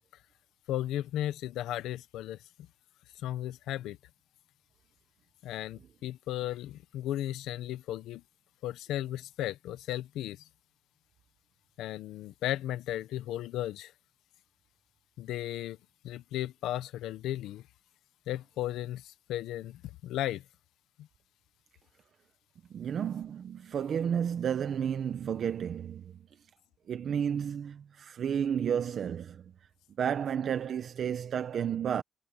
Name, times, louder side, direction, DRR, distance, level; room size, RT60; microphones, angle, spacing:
voice 1, 0.7-2.4 3.2-4.0 5.4-8.2 8.6-10.5 11.8-13.9 15.2-15.8 16.0-17.6 18.3-20.4, left 13 dB, 90° left, 0.9 m, -35 dB
voice 2, 22.7-26.1 26.9-29.4 30.0-32.0, right 8 dB, 60° right, 1.1 m, -32 dB
cardioid pair, 90°, 0 cm